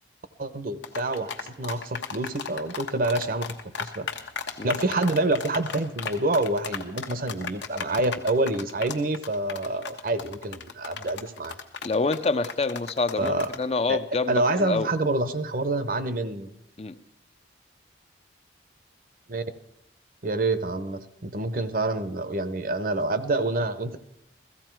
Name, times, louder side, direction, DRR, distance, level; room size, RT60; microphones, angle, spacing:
voice 1, 0.4-4.1 4.6-11.6 13.2-13.5 13.9-14.0 14.3-16.5 19.3-19.4 20.2-24.0, right 2 dB, 50° right, 11 dB, 0.8 m, -27 dB
sound 1, 0.8-13.6, left 6 dB, 70° left, 1.1 m, -35 dB
voice 2, 11.8-14.9 16.8-16.9, left 3 dB, 35° left, 12 dB, 0.5 m, -27 dB
15.5 x 14.5 x 4.6 m, 0.80 s
head